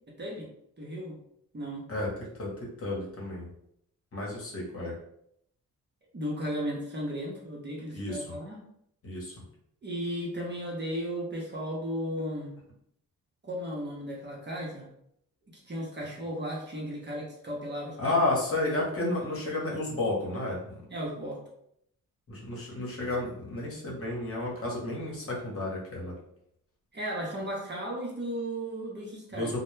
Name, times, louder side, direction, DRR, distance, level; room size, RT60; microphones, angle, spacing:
voice 1, 0.8-1.2 1.5-1.8 6.1-8.6 9.8-12.5 13.4-14.8 15.5-18.0 20.9-21.4 26.9-29.5, equal, 30° right, -3 dB, 0.8 m, -35 dB
voice 2, 1.9-3.5 4.1-4.9 7.9-8.3 9.0-9.3 18.0-20.8 22.3-26.1 29.3-29.6, left 2 dB, 40° left, -4 dB, 1.0 m, -31 dB
2.1 x 2.1 x 3.1 m, 0.73 s
cardioid pair, 80°, 34 cm